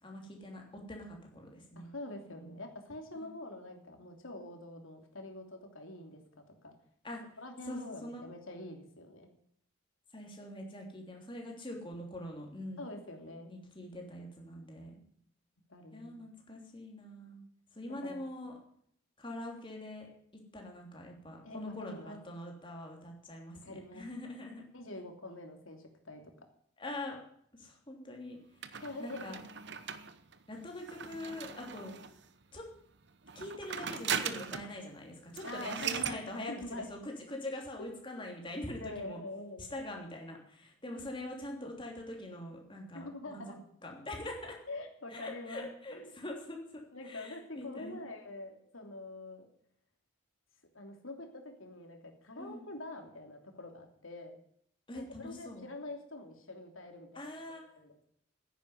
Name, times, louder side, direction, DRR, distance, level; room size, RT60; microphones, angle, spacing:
voice 1, 0.0-0.6 0.9-1.9 2.3-2.6 3.2-3.3 7.0-7.2 7.6-8.2 10.1-12.8 13.5-14.9 15.9-17.4 17.7-18.5 19.2-20.1 20.5-24.6 26.8-27.2 27.6-28.4 28.7-29.4 30.5-32.0 32.5-32.7 33.3-39.2 39.6-43.5 43.8-44.6 45.1-46.6 47.0-48.0 52.4-52.6 54.9-55.7 57.1-57.6, left 1 dB, 25° left, 1 dB, 3.3 m, -43 dB
voice 2, 1.8-6.2 6.6-6.7 7.4-9.3 12.8-13.5 15.7-16.1 17.9-18.2 21.4-22.2 23.5-24.1 24.7-26.2 28.8-29.4 35.4-36.9 37.8-37.9 38.8-39.7 42.9-43.6 44.7-45.7 45.9-46.1 46.9-49.5 50.7-54.4 54.9-57.3 57.8-58.1, left 2 dB, 80° left, 4 dB, 3.1 m, -45 dB
sound 1, 28.6-32.3 33.2-34.8 35.1-35.2 35.4-36.2, right 7 dB, 55° right, 1.0 m, -39 dB
10.0 x 10.0 x 9.8 m, 0.66 s
head